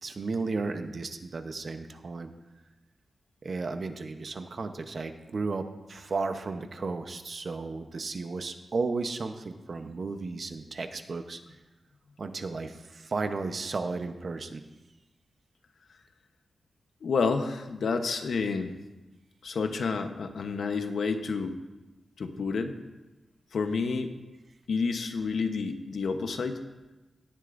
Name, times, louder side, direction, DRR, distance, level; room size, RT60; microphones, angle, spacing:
voice 1, 0.0-2.3 3.4-11.4 12.2-14.6, right 3 dB, 50° right, 7 dB, 0.8 m, -34 dB
voice 2, 17.0-18.8 19.4-21.6 22.2-22.7 23.5-24.1 24.7-26.6, left 4 dB, 85° left, 6 dB, 0.9 m, -29 dB
17.0 x 11.5 x 2.6 m, 1.1 s
wide cardioid pair, 140°, 0 cm